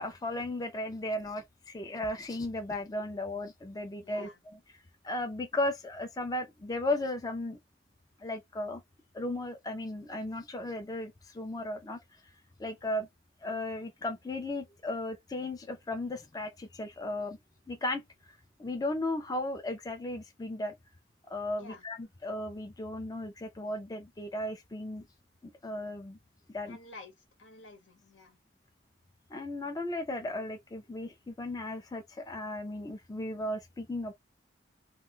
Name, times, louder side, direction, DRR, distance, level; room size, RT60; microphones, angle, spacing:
voice 1, 0.0-4.6 5.0-7.6 8.2-8.8 9.1-12.0 12.6-13.1 13.4-17.4 17.7-20.7 21.3-25.1 25.6-26.2 26.5-26.8 29.3-34.1, left 1 dB, 20° left, 0.4 m, -35 dB
voice 2, 4.0-4.4 21.6-21.8 26.7-27.1 27.4-28.4, left 3 dB, 85° left, 1.1 m, -50 dB
2.4 x 2.2 x 3.6 m
head